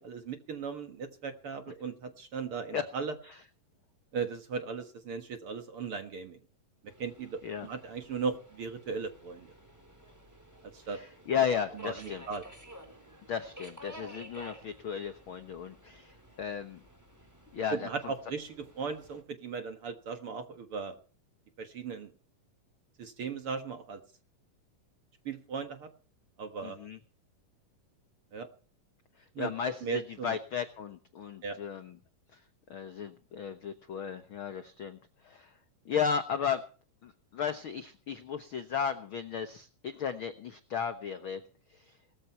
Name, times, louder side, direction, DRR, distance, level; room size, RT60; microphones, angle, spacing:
voice 1, 0.0-3.1 4.1-6.4 7.0-9.5 10.7-11.0 11.8-12.4 17.7-21.0 21.6-22.1 23.0-24.0 25.3-25.9 26.4-26.8 28.3-28.5 29.4-29.5 29.8-30.4 31.4-31.6, right 5 dB, 50° right, 8 dB, 1.9 m, -37 dB
Subway metro underground, 6.9-19.2, equal, 5° right, 3.1 m, -53 dB
voice 2, 10.9-12.2 13.3-16.8 17.5-17.9 26.6-27.0 29.2-32.0 32.3-32.4 32.7-35.6 35.8-36.6 37.0-41.4 41.7-42.0, left 7 dB, 70° left, 10 dB, 1.2 m, -35 dB
19.0 x 14.0 x 4.5 m, 0.39 s
omnidirectional pair, 3.9 m